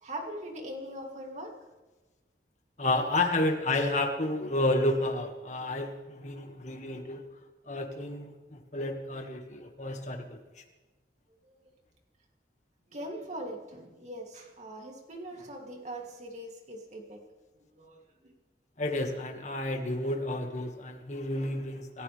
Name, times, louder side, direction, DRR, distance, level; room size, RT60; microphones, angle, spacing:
voice 1, 0.0-1.5 11.4-11.5 12.9-17.2 17.7-18.0, right 1 dB, 40° right, 1 dB, 2.9 m, -41 dB
voice 2, 2.8-7.3 7.7-10.4 18.8-22.0, left 2 dB, 40° left, 4 dB, 1.9 m, -31 dB
28.0 x 14.5 x 3.5 m, 1.2 s
head